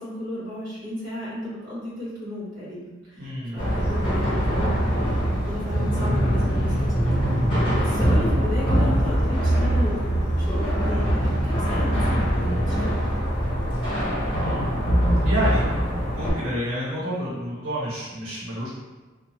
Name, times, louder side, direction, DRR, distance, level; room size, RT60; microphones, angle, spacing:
voice 1, 0.0-2.8 3.1-7.1 7.7-10.0 10.4-13.0, left 1 dB, 45° right, -8 dB, 1.3 m, -34 dB
voice 2, 3.2-3.6 14.4-15.0 15.2-15.6 16.1-18.7, equal, 85° right, -7 dB, 0.8 m, -29 dB
sound 1, 3.6-16.3, equal, 25° left, 1.1 m, -23 dB
Musical instrument, 3.8-13.7, right 1 dB, 60° left, 0.7 m, -29 dB
2.9 x 2.1 x 2.8 m, 1.2 s
head